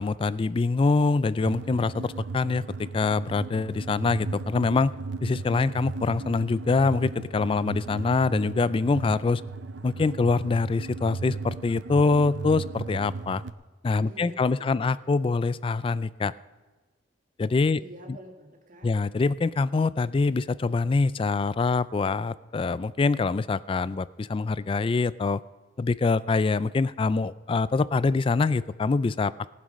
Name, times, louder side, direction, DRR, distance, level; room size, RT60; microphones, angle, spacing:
voice 1, 0.0-4.9 5.2-9.4 9.8-13.4 13.8-16.3 17.4-17.8 18.8-25.4 25.8-29.5, left 3 dB, 30° left, 18 dB, 0.3 m, -25 dB
sound 1, 1.4-13.5, right 3 dB, 70° right, 0.6 m, -36 dB
voice 2, 14.0-15.0 17.8-18.9, right 1 dB, 45° right, 2 dB, 2.1 m, -47 dB
18.5 x 7.5 x 5.3 m, 1.2 s
head